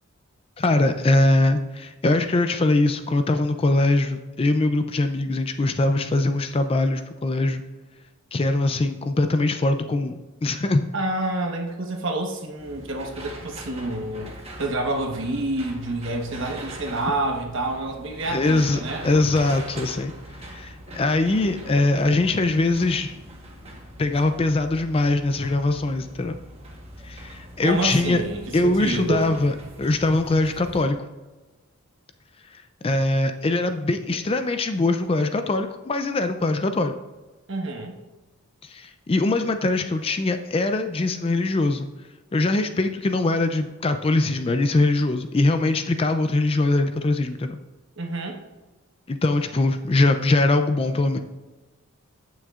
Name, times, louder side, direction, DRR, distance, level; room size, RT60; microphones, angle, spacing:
voice 1, 0.6-7.6 8.3-10.9 18.3-20.1 20.4-23.2 24.0-26.4 27.0-28.2 28.5-31.1 32.5-37.0 38.6-41.9 42.3-47.6 49.1-51.2, left 2 dB, 25° left, 8 dB, 0.3 m, -22 dB
voice 2, 10.9-14.3 14.6-19.1 27.6-29.3 37.5-37.9 48.0-48.4, right 2 dB, 55° right, 2 dB, 1.2 m, -28 dB
sound 1, 12.6-30.8, right 1 dB, 25° right, 1.2 m, -41 dB
14.5 x 6.2 x 2.4 m, 1.2 s
head